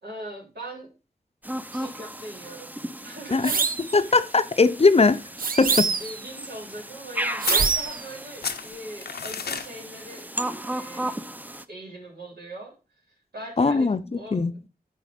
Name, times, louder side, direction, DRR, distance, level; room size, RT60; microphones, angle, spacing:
voice 1, 0.0-0.9 1.7-2.7 3.0-3.7 6.0-10.3 10.6-11.2 11.7-12.7 13.1-14.7, right 1 dB, 85° right, 3.5 m, -40 dB
sound 1, 1.4-11.6, right 1 dB, 10° right, 0.5 m, -36 dB
sound 2, 3.4-3.9 5.4-6.2 7.4-8.0, right 5 dB, 60° right, 0.7 m, -24 dB
voice 2, 3.9-5.2 5.6-5.9 13.6-14.5, left 3 dB, 40° left, 0.5 m, -20 dB
sound 3, 7.4-8.2 8.4-9.7, left 6 dB, 85° left, 0.6 m, -32 dB
9.2 x 4.0 x 5.1 m
wide cardioid pair, 60°, 16 cm